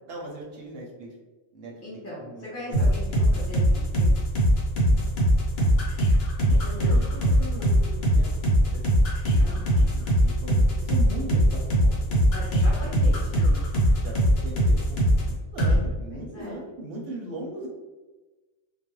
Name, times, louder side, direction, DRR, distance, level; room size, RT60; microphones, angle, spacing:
voice 1, 0.1-1.1 1.5-2.9 4.9-5.2 6.4-9.4 9.9-12.9 14.0-17.7, right 1 dB, 65° right, -2 dB, 0.7 m, -39 dB
voice 2, 1.8-4.1 5.6-5.8 9.4-9.9 12.3-13.7 16.1-16.6, left 1 dB, 20° left, -9 dB, 0.4 m, -40 dB
sound 1, 2.7-15.3 15.6-15.8, equal, 65° left, 0.9 m, -20 dB
2.3 x 2.0 x 3.0 m, 1.2 s
omnidirectional pair, 1.2 m